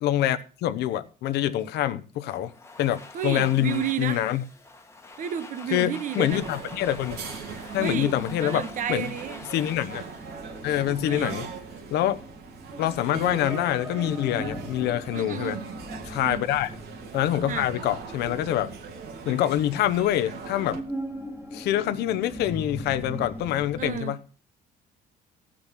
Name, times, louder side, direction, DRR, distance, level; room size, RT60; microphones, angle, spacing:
voice 1, 0.0-2.5 2.8-4.4 5.7-7.2 7.7-9.1 9.5-10.0 10.6-11.5 11.9-12.2 12.8-15.6 16.1-16.7 17.1-18.7 19.3-20.8 21.5-24.2, left 12 dB, 80° left, 1.0 m, -26 dB
Domestic sounds home sounds, 2.3-11.2, left 3 dB, 15° left, 1.4 m, -46 dB
voice 2, 3.1-4.2 5.2-6.4 7.8-8.1 8.4-9.4 11.0-11.4 15.1-15.7 16.2-16.4 17.5-17.7 23.8-24.2, right 9 dB, 50° right, 1.0 m, -31 dB
sound 1, 6.3-20.8, right 5 dB, 70° right, 2.6 m, -40 dB
sound 2, 6.7-23.9, equal, 15° right, 2.1 m, -41 dB
16.5 x 6.4 x 5.8 m
cardioid pair, 110°, 17 cm